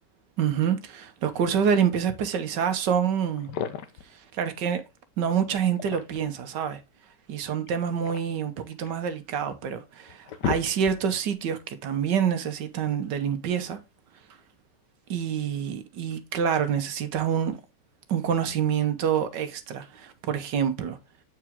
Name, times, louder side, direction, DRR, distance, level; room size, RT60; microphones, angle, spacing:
voice 1, 0.4-3.5 4.3-4.8 5.2-6.8 7.3-13.8 15.1-17.6 18.1-21.0, right 8 dB, 80° right, 1.6 m, -27 dB
sound 1, 2.9-3.0 3.4-4.1 5.6-6.4 7.7-9.1 9.6-9.7 10.1-11.2, left 8 dB, 75° left, 1.4 m, -34 dB
8.0 x 4.8 x 3.6 m
omnidirectional pair, 1.8 m